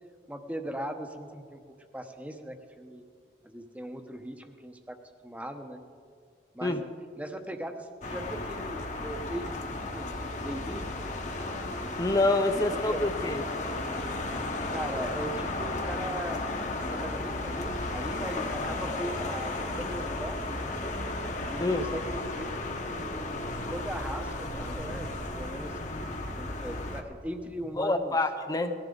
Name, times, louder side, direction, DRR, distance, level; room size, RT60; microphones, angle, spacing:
voice 1, 0.3-1.6 1.9-3.0 3.4-5.0 5.2-5.8 6.5-6.9 7.2-11.0 12.5-13.0 14.7-16.5 16.9-20.8 21.5-22.5 22.8-25.8 26.4-28.2, right 1 dB, 10° right, 5 dB, 0.9 m, -39 dB
sound 1, 8.0-27.0, left 2 dB, 40° left, 1.2 m, -34 dB
voice 2, 12.0-13.4 21.6-21.8 27.8-28.7, left 2 dB, 20° left, 7 dB, 0.7 m, -26 dB
19.0 x 14.0 x 3.9 m, 2.2 s
head